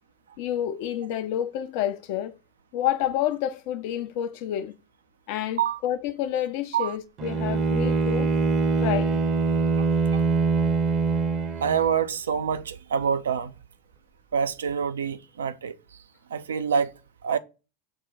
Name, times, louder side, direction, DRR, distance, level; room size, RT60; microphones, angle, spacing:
voice 1, 0.4-2.3 2.7-4.7 5.3-8.3 8.8-9.2, left 11 dB, 55° left, 0.3 m, -29 dB
Bowed string instrument, 7.2-12.0, right 4 dB, 40° right, 0.7 m, -23 dB
voice 2, 9.8-10.2 11.6-13.5 14.3-15.8 16.3-16.9 17.2-17.4, right 7 dB, 70° right, 0.3 m, -26 dB
6.0 x 2.2 x 3.9 m
figure-of-eight pair, 85°, 0 cm